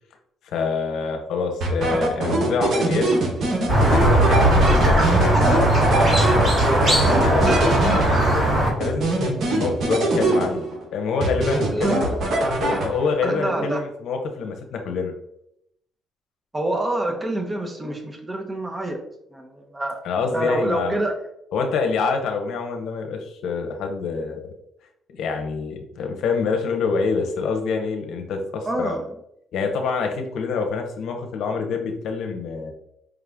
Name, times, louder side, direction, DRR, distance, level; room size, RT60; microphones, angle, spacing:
voice 1, 0.4-3.2 3.9-5.6 6.3-12.0 12.6-15.1 20.0-21.0 21.5-24.4 25.2-29.0 29.5-32.7, left 4 dB, 80° left, 4 dB, 0.7 m, -26 dB
sound 1, 1.6-8.4 8.8-10.8 11.2-13.2, right 2 dB, 65° right, 1.0 m, -23 dB
Squeak, 3.7-8.7, right 1 dB, 40° right, 1.5 m, -18 dB
voice 2, 13.2-13.8 16.5-19.0 19.3-20.0 20.3-21.1 28.6-29.1, right 1 dB, 20° right, 2 dB, 0.9 m, -26 dB
4.9 x 2.4 x 3.4 m, 0.78 s
cardioid pair, 90°, 0 cm